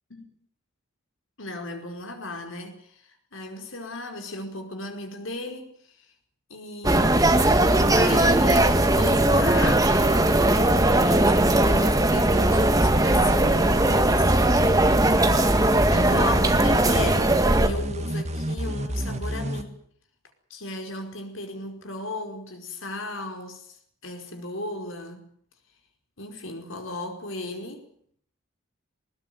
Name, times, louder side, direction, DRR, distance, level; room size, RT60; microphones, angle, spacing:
voice 1, 1.4-6.1 6.5-7.4 7.9-14.3 15.9-19.8 20.5-23.8 24.0-25.3 26.2-27.9, left 2 dB, 70° left, 5.0 m, -35 dB
sound 1, 6.8-17.7, right 1 dB, 15° right, 1.7 m, -19 dB
sound 2, 12.8-19.6, right 1 dB, 30° right, 1.8 m, -29 dB
20.5 x 20.0 x 9.3 m
head